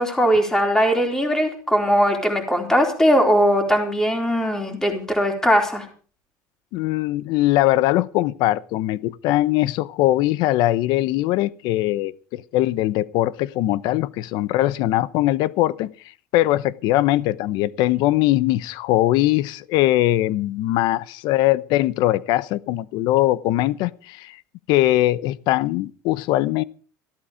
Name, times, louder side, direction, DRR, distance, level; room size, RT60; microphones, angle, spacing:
voice 1, 0.0-5.8, equal, 5° left, 4.0 m, -19 dB
voice 2, 6.7-15.9 16.3-24.4 24.7-26.6, left 15 dB, 60° left, 0.9 m, -21 dB
15.5 x 13.0 x 5.1 m
cardioid pair, 155°, 8 cm